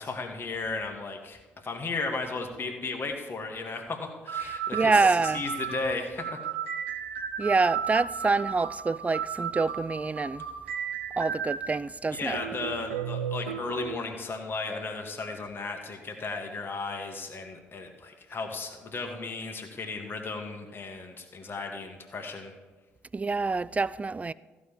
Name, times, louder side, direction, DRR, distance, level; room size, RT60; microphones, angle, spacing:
voice 1, 0.0-6.5 12.1-22.5, left 3 dB, 35° left, 1.8 m, -35 dB
sound 1, 3.6-3.7 4.3-11.8 12.3-14.0, right 7 dB, 85° right, 0.6 m, -35 dB
voice 2, 4.7-5.4 7.4-10.4 11.2-12.4 23.1-24.3, right 4 dB, 20° right, 0.4 m, -26 dB
15.0 x 5.2 x 7.3 m
figure-of-eight pair, 45°, 6 cm